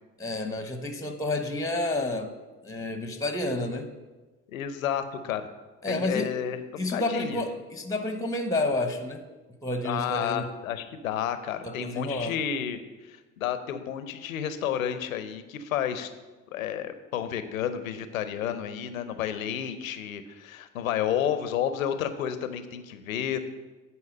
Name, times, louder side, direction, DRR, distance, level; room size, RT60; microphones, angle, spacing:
voice 1, 0.2-2.3 2.6-3.9 5.8-6.3 6.8-9.2 9.6-10.5 11.6-12.4, left 2 dB, 10° left, 8 dB, 1.2 m, -30 dB
voice 2, 4.5-5.5 5.9-6.6 6.9-7.4 9.8-16.1 16.5-23.4, left 9 dB, 85° left, 11 dB, 0.7 m, -31 dB
9.7 x 4.7 x 7.4 m, 1.2 s
hypercardioid pair, 55°, 39 cm